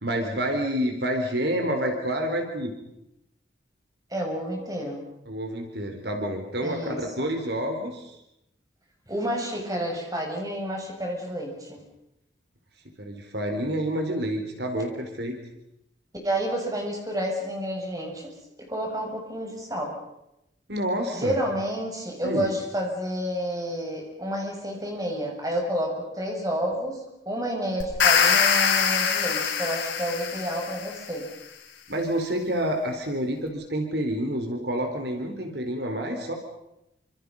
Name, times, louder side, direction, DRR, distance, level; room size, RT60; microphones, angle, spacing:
voice 1, 0.0-2.7 5.3-8.2 13.0-15.4 20.7-21.4 22.2-22.5 31.9-36.3, equal, 65° right, 4 dB, 4.2 m, -28 dB
voice 2, 4.1-5.0 6.6-7.3 9.1-11.8 16.2-20.0 21.1-31.3, equal, 20° right, 1 dB, 7.1 m, -30 dB
sound 1, 27.8-31.0, left 6 dB, 85° left, 5.2 m, -23 dB
28.5 x 27.0 x 5.6 m, 0.86 s
head